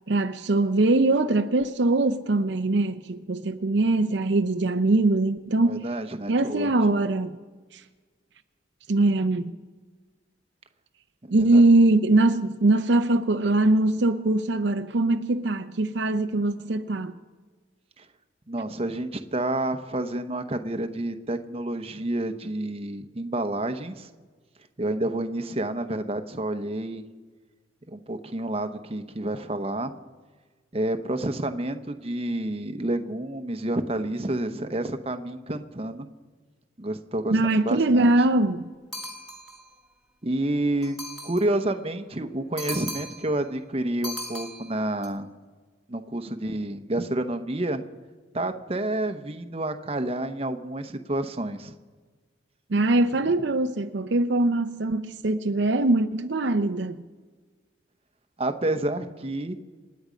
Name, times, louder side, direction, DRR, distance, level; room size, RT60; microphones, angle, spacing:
voice 1, 0.1-5.9 6.3-7.4 7.7-7.8 8.9-9.5 11.3-17.1 37.3-38.7 52.7-57.0, right 2 dB, 65° right, 0.6 m, -22 dB
voice 2, 5.6-6.7 11.2-11.6 18.0-18.1 18.5-24.1 24.8-27.0 27.9-29.9 30.7-36.1 36.8-38.1 40.2-41.0 41.2-45.3 45.9-47.8 48.3-51.8 58.4-59.6, right 1 dB, 30° right, 0.9 m, -29 dB
sound 1, 38.9-39.7 40.8-41.6 42.6-43.4 44.0-45.1, equal, ahead, 2.4 m, -37 dB
27.0 x 9.6 x 5.1 m
head